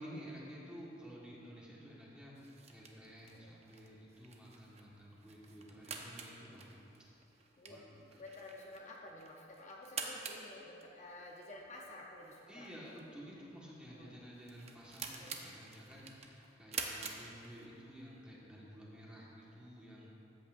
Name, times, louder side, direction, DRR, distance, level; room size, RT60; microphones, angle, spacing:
voice 1, 0.0-6.8 7.7-7.8 12.5-20.1, equal, 5° right, -6 dB, 1.5 m, -52 dB
sound 1, 2.3-18.0, right 5 dB, 35° right, 0.7 m, -48 dB
voice 2, 8.2-12.7 13.9-14.2 15.2-15.4, left 1 dB, 40° left, -1 dB, 0.7 m, -51 dB
13.5 x 8.3 x 2.6 m, 3.0 s
head